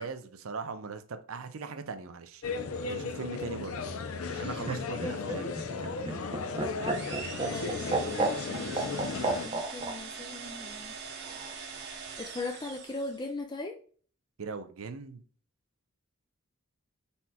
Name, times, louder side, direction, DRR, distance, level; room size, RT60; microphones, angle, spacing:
voice 1, 0.0-2.4 2.9-3.8 4.3-5.6 6.0-6.3 14.4-15.2, right 4 dB, 75° right, 9 dB, 0.6 m, -39 dB
sound 1, 2.4-9.5, left 4 dB, 80° left, 0.6 m, -35 dB
Laughter, 4.3-9.9 11.2-11.9, right 3 dB, 25° right, 0.7 m, -32 dB
voice 2, 5.0-5.5 7.5-11.0 12.2-13.8, left 2 dB, 20° left, 4 dB, 0.4 m, -39 dB
sound 2, 6.8-13.3, right 5 dB, 55° right, 0.9 m, -42 dB
4.3 x 4.2 x 2.2 m, 0.44 s
head